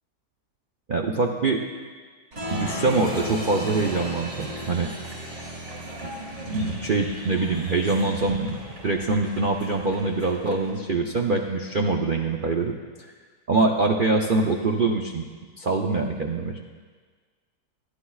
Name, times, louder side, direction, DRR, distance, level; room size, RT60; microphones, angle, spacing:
voice 1, 0.9-1.6 2.5-4.9 6.5-8.6 8.8-12.7 13.5-15.3 15.6-16.6, right 3 dB, 75° right, 1 dB, 0.4 m, -24 dB
Applause, 2.3-10.7, equal, 40° right, 2.3 m, -35 dB
21.5 x 11.5 x 2.4 m, 1.5 s
omnidirectional pair, 1.9 m